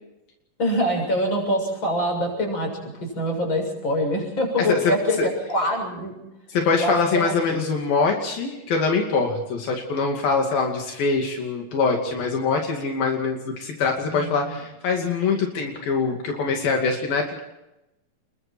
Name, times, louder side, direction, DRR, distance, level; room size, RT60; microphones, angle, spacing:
voice 1, 0.6-6.1 6.8-7.6 14.1-14.6, equal, 30° left, 3 dB, 7.7 m, -25 dB
voice 2, 6.5-17.4, left 4 dB, 80° left, 1 dB, 4.3 m, -23 dB
29.0 x 22.5 x 4.5 m, 0.92 s
omnidirectional pair, 4.1 m